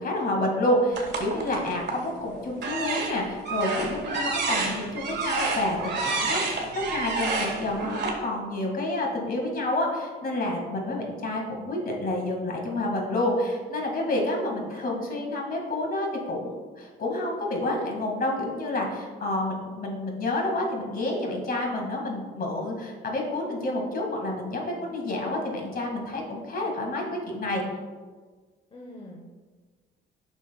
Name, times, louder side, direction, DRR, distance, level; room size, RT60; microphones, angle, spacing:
voice 1, 0.0-27.6, left 1 dB, 50° left, 0 dB, 2.1 m, -29 dB
sound 1, 0.9-2.1 2.6-8.1, right 4 dB, 60° right, 1.7 m, -29 dB
voice 2, 1.6-1.9 14.2-14.7 28.7-29.4, left 1 dB, 30° left, -1 dB, 1.0 m, -46 dB
9.7 x 6.1 x 2.3 m, 1.4 s
cardioid pair, 90°, 20 cm